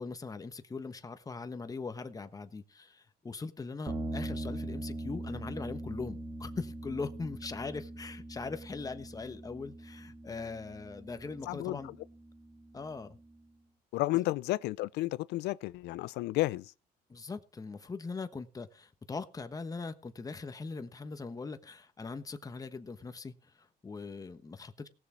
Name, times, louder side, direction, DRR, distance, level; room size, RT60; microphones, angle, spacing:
voice 1, 0.0-12.0 12.7-13.2 17.1-24.9, left 4 dB, 20° left, 1.2 m, -41 dB
sound 1, 3.9-13.3, right 1 dB, 20° right, 2.7 m, -42 dB
voice 2, 13.9-16.6, left 18 dB, 85° left, 0.5 m, -32 dB
18.0 x 6.8 x 4.7 m
cardioid pair, 110°, 17 cm